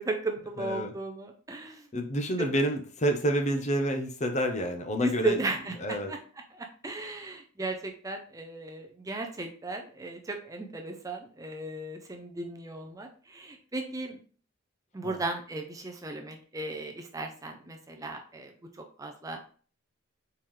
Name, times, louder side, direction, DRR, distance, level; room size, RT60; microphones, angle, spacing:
voice 1, 0.0-1.8 2.4-2.5 5.0-6.2 6.5-14.2 14.9-18.5 19.0-19.4, right 2 dB, 15° right, 3 dB, 0.5 m, -35 dB
voice 2, 0.6-0.9 1.9-5.4 5.8-6.1 15.0-15.2, right 1 dB, 35° left, 5 dB, 0.7 m, -28 dB
4.4 x 3.7 x 3.1 m, 0.41 s
head